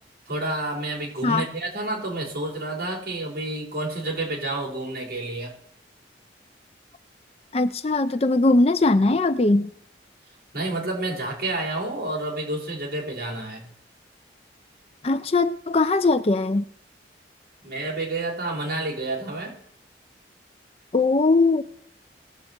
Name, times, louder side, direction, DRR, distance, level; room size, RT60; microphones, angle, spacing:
voice 1, 0.3-5.5 10.5-13.7 17.6-19.6, right 2 dB, 55° right, -2 dB, 4.6 m, -29 dB
voice 2, 7.5-9.7 15.0-16.7 20.9-21.6, left 3 dB, 35° left, 12 dB, 0.5 m, -20 dB
19.0 x 7.6 x 4.4 m, 0.67 s
head